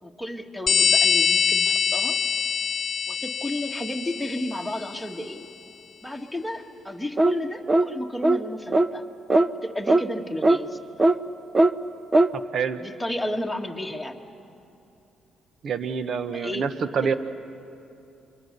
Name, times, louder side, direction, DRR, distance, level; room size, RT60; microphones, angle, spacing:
voice 1, 0.0-2.2 3.1-5.5 6.0-9.0 9.6-10.8 12.8-14.2 16.3-16.7 17.0-17.2, left 1 dB, ahead, 1 dB, 1.8 m, -32 dB
sound 1, 0.7-4.9, left 6 dB, 45° left, 0.6 m, -24 dB
sound 2, 7.2-7.4 7.7-7.9 8.2-8.4 8.7-8.9 9.3-9.5 9.9-10.0 10.4-10.6 11.0-11.2 11.5-11.7 12.1-12.3, right 2 dB, 25° right, 0.7 m, -18 dB
voice 2, 12.3-12.8 15.6-17.1, right 6 dB, 60° right, 10 dB, 1.1 m, -27 dB
29.0 x 24.0 x 6.8 m, 2.7 s
cardioid pair, 90°, 0 cm